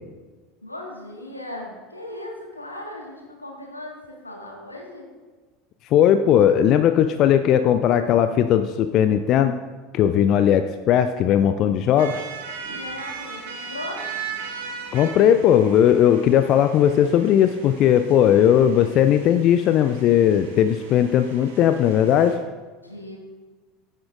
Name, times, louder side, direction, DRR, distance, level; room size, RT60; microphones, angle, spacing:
voice 1, 0.6-5.0 12.6-14.1 22.8-23.2, left 1 dB, 85° left, 0 dB, 1.6 m, -37 dB
voice 2, 5.8-9.6 9.9-12.3 14.9-22.4, left 10 dB, 45° left, 10 dB, 0.4 m, -18 dB
sound 1, 11.9-22.3, right 5 dB, 60° right, 1.8 m, -38 dB
15.5 x 7.3 x 2.5 m, 1.4 s
figure-of-eight pair, 75°, 0 cm